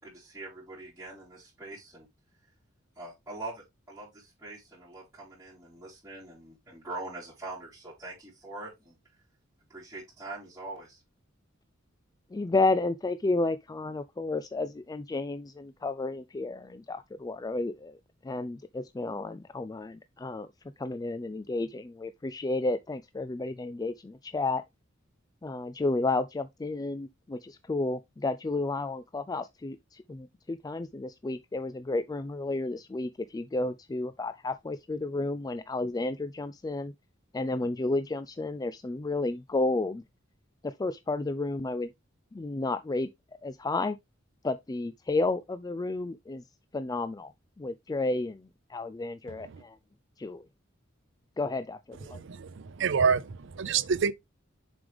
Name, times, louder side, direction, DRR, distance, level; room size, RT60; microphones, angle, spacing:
voice 1, 0.0-2.1 3.0-9.0 9.7-11.0, right 2 dB, 10° right, 3.6 m, -43 dB
voice 2, 12.3-18.0 18.2-20.5 20.8-24.6 25.4-36.9 37.3-40.0 40.6-41.9 42.3-43.1 43.4-44.0 44.4-46.4 46.7-47.3 47.6-49.8 50.2-50.4 51.4-52.2, left 2 dB, 20° left, 0.3 m, -32 dB
voice 3, 52.1-54.1, right 6 dB, 65° right, 0.5 m, -27 dB
7.0 x 5.1 x 3.4 m
head